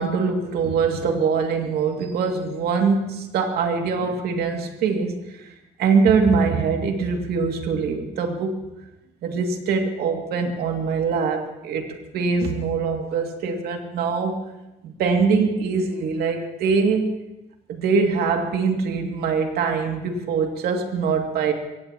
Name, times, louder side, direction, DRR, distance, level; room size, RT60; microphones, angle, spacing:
voice 1, 0.0-5.5 5.8-8.6 9.2-11.9 12.1-14.5 14.8-17.1 17.7-21.5, right 5 dB, 70° right, 3 dB, 2.5 m, -23 dB
23.5 x 18.0 x 3.0 m, 0.96 s
cardioid pair, 110°, 17 cm